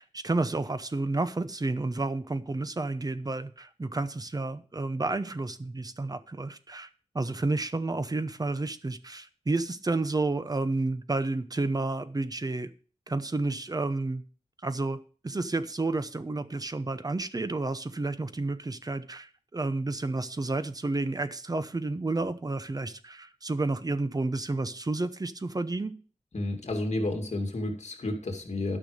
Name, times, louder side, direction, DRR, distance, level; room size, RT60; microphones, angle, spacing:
voice 1, 0.0-6.9 7.1-12.7 13.1-14.2 14.6-15.0 15.2-25.9, right 2 dB, 30° right, 11 dB, 0.8 m, -31 dB
voice 2, 26.3-28.8, left 2 dB, 65° left, 2 dB, 2.4 m, -31 dB
12.5 x 6.1 x 5.1 m, 0.40 s
wide cardioid pair, 95°, 12 cm